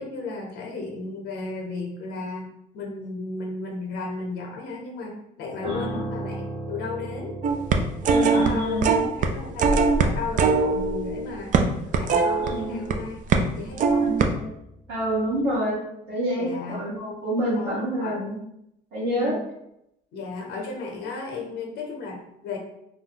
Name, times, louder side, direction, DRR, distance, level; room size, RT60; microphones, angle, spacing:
voice 1, 0.0-7.4 8.0-13.3 13.6-14.1 16.4-16.8 17.5-18.2 19.1-19.4 20.1-22.6, left 3 dB, 75° left, 0 dB, 0.7 m, -34 dB
Piano, 5.6-15.0 15.3-15.5, right 1 dB, 20° right, 0.8 m, -38 dB
voice 2, 5.6-6.0 8.0-8.9 12.4-12.8 14.0-14.5 14.9-18.3 18.9-19.3, equal, 90° right, -9 dB, 1.2 m, -28 dB
sound 1, 7.4-8.5 8.8-9.3 9.6-12.9 13.3-13.5 13.8-14.3, right 4 dB, 50° right, 0.4 m, -21 dB
2.6 x 2.3 x 3.7 m, 0.80 s
cardioid pair, 110°, 17 cm